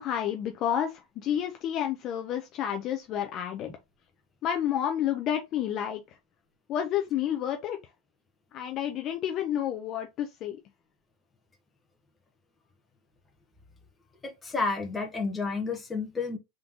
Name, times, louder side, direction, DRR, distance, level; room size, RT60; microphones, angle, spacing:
voice 1, 0.0-3.7 4.4-6.0 6.7-7.8 8.5-10.6, left 10 dB, 35° left, 0.7 m, -30 dB
voice 2, 14.2-16.4, left 4 dB, 10° left, 1.2 m, -31 dB
3.8 x 3.7 x 3.0 m
supercardioid pair, 155°, 0 cm